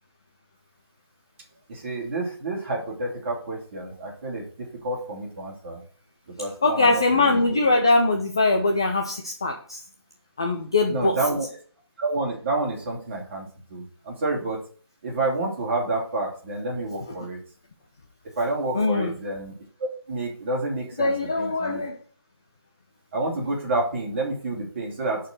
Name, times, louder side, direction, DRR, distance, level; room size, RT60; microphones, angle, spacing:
voice 1, 1.7-5.8 6.4-7.4 10.9-11.5 12.0-13.4 13.7-14.6 15.0-17.4 18.4-19.5 19.8-21.8 23.1-25.2, right 2 dB, 30° right, -1 dB, 3.2 m, -29 dB
voice 2, 6.6-9.8 10.4-11.2 17.1-17.2 18.7-19.1 21.0-22.0, left 2 dB, 10° left, 1 dB, 0.3 m, -22 dB
10.5 x 4.5 x 6.7 m, 0.44 s
figure-of-eight pair, 160°, 14 cm